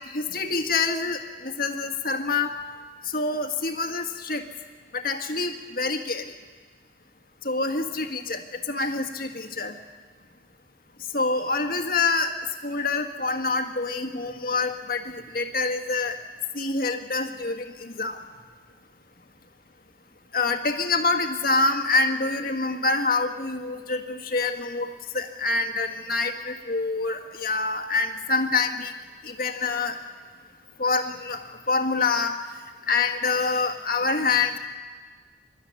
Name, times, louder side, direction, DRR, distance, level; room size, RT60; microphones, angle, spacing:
voice 1, 0.1-2.6 3.0-4.4 4.9-6.3 7.4-8.4 8.7-9.8 11.1-12.3 12.6-16.2 16.5-18.2 20.3-28.9 29.2-30.0 30.8-32.4 32.9-34.6, left 3 dB, 50° left, 5 dB, 1.7 m, -26 dB
23.5 x 12.5 x 9.6 m, 1.5 s
head